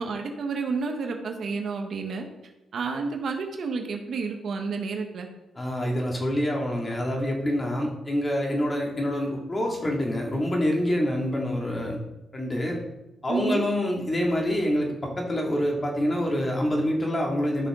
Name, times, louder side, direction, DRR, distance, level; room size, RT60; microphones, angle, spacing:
voice 1, 0.0-2.3 2.7-5.3 13.3-13.6, right 4 dB, 65° right, 3 dB, 1.3 m, -30 dB
voice 2, 5.6-12.0 12.3-12.8 13.2-17.7, equal, 25° left, 0 dB, 2.5 m, -26 dB
12.5 x 5.9 x 3.9 m, 0.97 s
cardioid pair, 75°, 0 cm